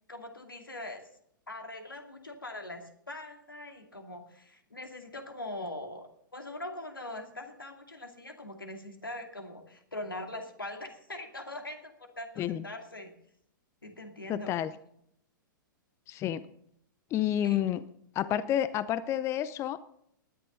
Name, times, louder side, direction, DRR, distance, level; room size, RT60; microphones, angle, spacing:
voice 1, 0.1-1.1 1.5-13.1 13.8-14.5 17.4-17.6, left 1 dB, 85° left, 5 dB, 2.4 m, -42 dB
voice 2, 14.3-14.7 16.1-16.4 17.1-17.8 18.1-19.8, left 11 dB, 25° left, 16 dB, 0.6 m, -29 dB
19.0 x 10.5 x 3.9 m, 0.70 s
figure-of-eight pair, 110°, 11 cm